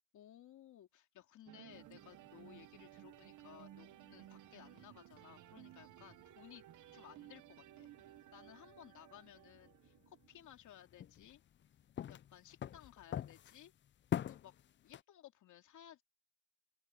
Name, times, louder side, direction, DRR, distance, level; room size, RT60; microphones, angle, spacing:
voice 1, 0.1-6.6 6.9-7.9 8.3-11.4 12.1-13.7 14.3-16.0, left 11 dB, 75° left, 2.8 m, -59 dB
sound 1, 1.5-10.5, right 14 dB, 80° right, 1.0 m, -58 dB
sound 2, 1.7-15.0, left 10 dB, 40° left, 0.4 m, -49 dB
open air
cardioid pair, 90°, 30 cm